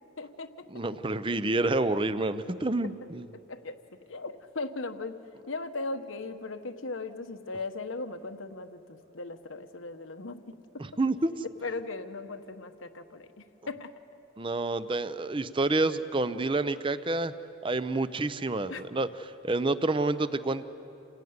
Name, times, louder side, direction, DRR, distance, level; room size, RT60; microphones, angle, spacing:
voice 1, 0.2-0.8 2.8-2.9 3.3-3.8 4.1-5.2 5.5-10.8 11.6-13.9 18.7-18.8, left 3 dB, 85° left, 8 dB, 1.2 m, -38 dB
voice 2, 0.7-3.3 10.8-11.3 14.4-17.3 17.6-19.1 19.4-20.6, right 2 dB, 25° right, 13 dB, 0.6 m, -28 dB
28.0 x 17.5 x 9.5 m, 3.0 s
head